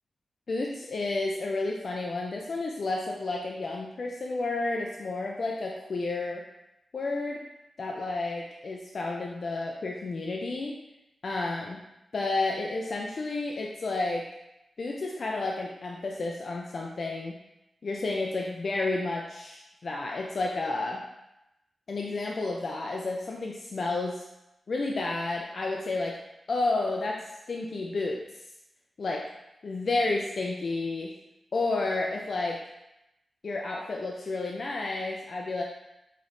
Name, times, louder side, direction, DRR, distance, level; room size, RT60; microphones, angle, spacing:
voice 1, 0.5-6.4 6.9-7.4 7.8-10.7 11.2-11.8 12.1-14.2 14.8-17.3 17.8-21.0 21.9-24.2 24.7-26.2 26.5-28.2 29.0-29.3 29.6-31.1 31.5-32.6 33.4-35.6, left 3 dB, 55° left, -1 dB, 0.4 m, -31 dB
5.7 x 3.1 x 2.6 m, 0.90 s
wide cardioid pair, 90°, 0 cm